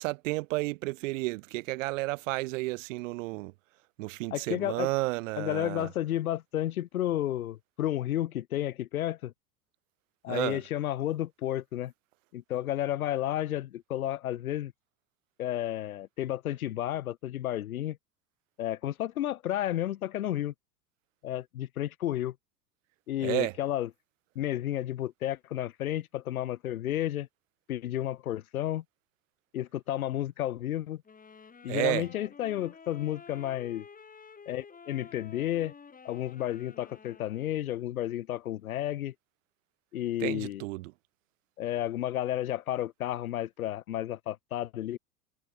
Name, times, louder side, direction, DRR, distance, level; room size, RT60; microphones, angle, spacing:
voice 1, 0.0-3.5 4.0-5.9 10.3-10.6 23.2-23.5 31.7-32.0 40.2-40.9, right 21 dB, 55° right, 2.1 m, -32 dB
voice 2, 4.3-4.9 5.4-9.3 10.2-11.9 12.3-14.7 15.4-18.0 18.6-20.5 21.2-22.3 23.1-23.9 24.4-27.3 27.7-28.8 29.5-31.0 31.6-33.8 34.5-35.7 36.0-39.1 39.9-40.6 41.6-45.0, left 12 dB, 65° left, 2.0 m, -32 dB
sound 1, 31.0-37.6, left 5 dB, 20° left, 5.4 m, -51 dB
figure-of-eight pair, 80°, 46 cm